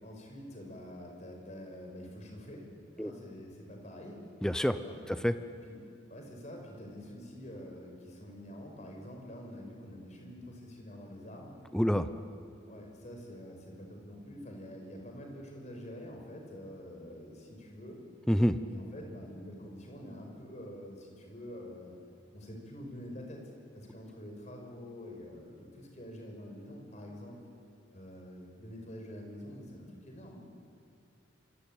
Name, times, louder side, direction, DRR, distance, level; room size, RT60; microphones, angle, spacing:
voice 1, 0.0-2.7 2.9-4.2 4.8-5.0 5.7-5.8 6.1-11.6 12.7-18.0 18.6-21.9 22.3-23.4 23.7-27.4 27.9-30.4, equal, 35° left, 1 dB, 5.5 m, -46 dB
voice 2, 4.4-4.8 5.2-5.3 11.7-12.1 18.3-18.5, equal, 5° left, 10 dB, 0.7 m, -26 dB
26.5 x 25.0 x 9.1 m, 2.7 s
head